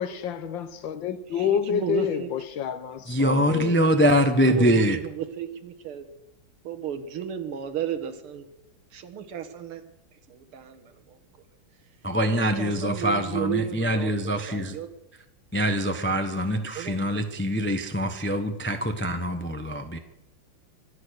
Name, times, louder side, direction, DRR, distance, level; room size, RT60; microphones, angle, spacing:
voice 1, 0.0-3.7, left 8 dB, 65° left, 12 dB, 1.5 m, -28 dB
voice 2, 1.4-2.3 3.6-6.1 6.6-8.5 8.9-9.8 10.3-11.2 12.3-14.9 16.8-17.0, right 9 dB, 80° right, 8 dB, 2.2 m, -34 dB
voice 3, 3.1-5.0 12.0-14.7 15.5-20.0, equal, 15° left, 6 dB, 0.4 m, -24 dB
24.5 x 8.6 x 6.5 m, 0.91 s
omnidirectional pair, 2.4 m